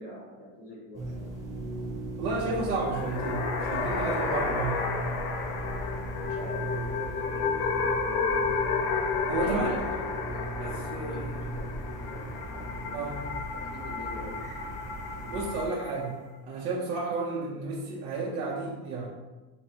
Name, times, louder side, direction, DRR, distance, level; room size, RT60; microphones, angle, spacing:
voice 1, 0.0-1.3 6.2-8.6 9.3-13.2 13.6-14.5, left 1 dB, 25° left, -4 dB, 0.9 m, -44 dB
sound 1, 0.9-15.7, right 1 dB, 5° right, 0.9 m, -38 dB
voice 2, 2.2-4.9 9.3-9.8 10.6-11.3 12.9-13.2 15.3-19.1, right 3 dB, 75° right, -5 dB, 0.9 m, -32 dB
sound 2, 2.7-16.1, left 5 dB, 50° left, 0.6 m, -32 dB
5.5 x 2.1 x 2.8 m, 1.1 s
supercardioid pair, 120°, 48 cm